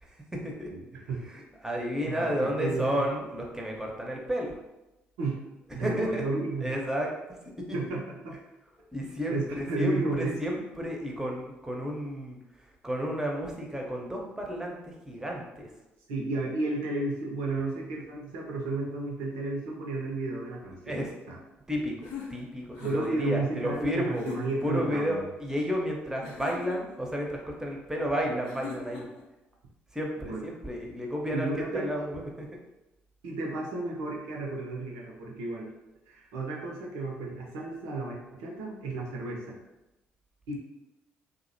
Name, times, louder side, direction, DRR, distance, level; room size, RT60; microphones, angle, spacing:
voice 1, 0.0-4.6 5.8-6.2 6.6-7.1 7.7-7.8 8.9-15.7 20.9-21.1 21.7-22.0 22.3-24.3 24.6-29.1 29.9-32.6, equal, 10° right, -1 dB, 0.6 m, -32 dB
voice 2, 0.7-1.2 2.0-3.1 5.2-5.4 5.7-6.7 7.7-8.4 9.3-10.3 16.1-21.0 21.3-21.4 22.8-25.3 30.2-30.5 31.3-31.9 33.2-35.7 36.1-39.6 40.5-40.6, right 2 dB, 75° right, -1 dB, 0.5 m, -33 dB
sound 1, 22.0-23.3 24.1-24.8 26.2-27.0 28.4-29.2, left 5 dB, 80° left, 0.4 m, -41 dB
2.5 x 2.1 x 2.6 m, 0.99 s
hypercardioid pair, 50°, 5 cm